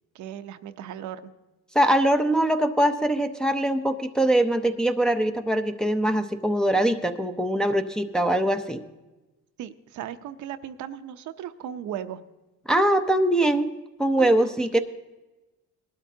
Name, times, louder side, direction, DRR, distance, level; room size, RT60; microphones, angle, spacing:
voice 1, 0.1-1.3 9.6-12.2 14.2-14.5, right 10 dB, 75° right, 9 dB, 0.7 m, -36 dB
voice 2, 1.7-8.8 12.7-13.7 14.0-14.8, right 1 dB, ahead, 5 dB, 0.6 m, -22 dB
19.5 x 12.5 x 2.8 m, 1.1 s
cardioid pair, 125°, 30 cm